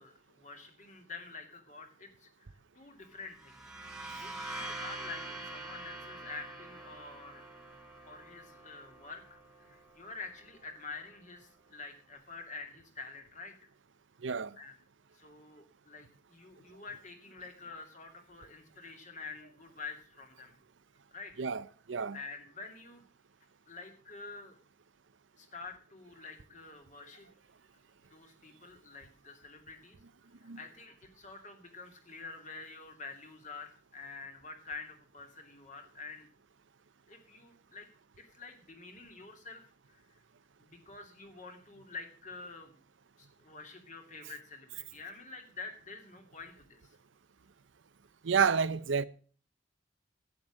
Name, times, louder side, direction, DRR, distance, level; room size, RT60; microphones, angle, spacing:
voice 1, 0.0-3.6 4.2-7.5 8.0-13.5 14.6-14.7 15.1-20.6 21.1-21.3 22.1-23.0 23.7-24.6 25.4-27.3 28.0-30.0 30.4-36.3 37.1-37.9 38.2-39.6 39.9-40.2 40.6-42.8 43.2-47.0, left 4 dB, 40° left, 2.6 m, -48 dB
sound 1, 3.3-10.9, right 2 dB, 5° right, 1.8 m, -45 dB
voice 2, 14.2-14.6 21.4-22.2 30.4-30.6 48.2-49.0, right 6 dB, 90° right, 0.7 m, -30 dB
11.5 x 9.1 x 6.4 m
head